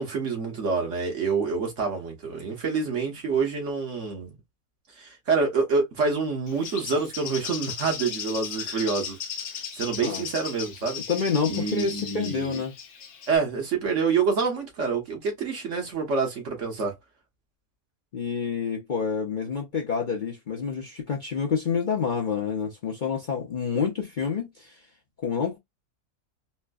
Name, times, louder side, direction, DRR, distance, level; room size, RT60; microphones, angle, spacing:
voice 1, 0.0-4.3 4.9-9.2 9.7-11.0 11.5-12.6 13.3-17.0, right 5 dB, 60° right, 1.4 m, -27 dB
Bird, 6.5-13.4, left 7 dB, 65° left, 1.0 m, -36 dB
voice 2, 11.1-12.7 18.1-24.8 25.2-25.6, left 6 dB, 45° left, 0.7 m, -28 dB
4.3 x 2.1 x 2.3 m
omnidirectional pair, 1.5 m